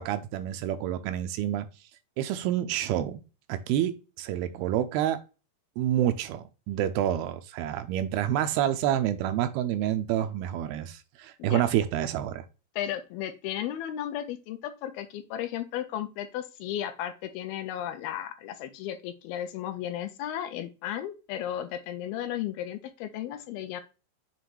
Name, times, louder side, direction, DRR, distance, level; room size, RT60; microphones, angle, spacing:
voice 1, 0.0-1.7 2.2-3.2 3.5-3.9 4.2-5.2 5.8-12.4, right 11 dB, 85° right, 9 dB, 2.5 m, -28 dB
voice 2, 12.8-23.8, left 11 dB, 80° left, 8 dB, 2.4 m, -34 dB
7.6 x 3.1 x 4.5 m, 0.30 s
omnidirectional pair, 4.6 m